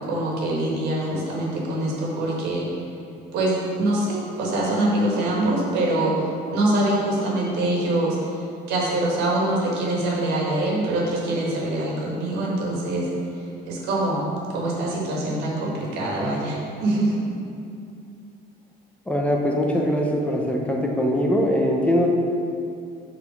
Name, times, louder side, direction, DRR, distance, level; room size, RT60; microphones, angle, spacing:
voice 1, 0.1-2.7 3.3-6.2 6.5-8.3 8.7-13.1 13.7-14.2 14.5-17.3, right 1 dB, 85° right, -3 dB, 1.5 m, -24 dB
voice 2, 19.1-22.1, equal, 5° left, 0 dB, 0.8 m, -22 dB
5.6 x 4.0 x 5.9 m, 2.6 s
cardioid pair, 110°, 17 cm